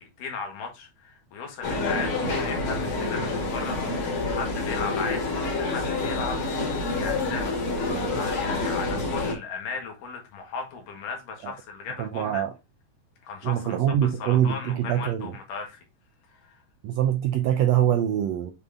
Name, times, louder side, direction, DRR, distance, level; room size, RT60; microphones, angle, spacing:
voice 1, 0.0-12.4 13.2-15.8 16.3-16.6, left 5 dB, 80° left, 3.1 m, -36 dB
sound 1, 1.6-9.3, left 3 dB, 60° left, 3.4 m, -28 dB
voice 2, 7.9-8.2 11.4-11.5 12.0-12.5 13.4-15.3 16.8-18.5, right 10 dB, 75° right, 1.6 m, -24 dB
7.2 x 3.9 x 3.5 m
omnidirectional pair, 3.7 m